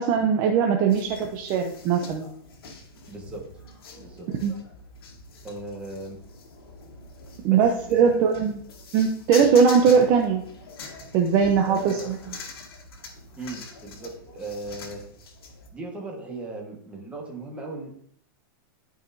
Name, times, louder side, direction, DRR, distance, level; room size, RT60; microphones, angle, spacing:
voice 1, 0.0-2.3 4.3-4.5 7.4-8.6 8.9-10.4 11.1-12.2, right 6 dB, 35° right, 3 dB, 0.7 m, -20 dB
sound 1, 0.9-15.7, left 3 dB, 85° left, 1.8 m, -43 dB
voice 2, 3.1-3.4 4.0-4.3 5.4-6.2 7.5-8.3 11.7-12.2 13.4-15.0 15.7-17.9, right 2 dB, 10° right, -1 dB, 1.5 m, -37 dB
12.5 x 5.0 x 2.7 m, 0.64 s
supercardioid pair, 160°, 12 cm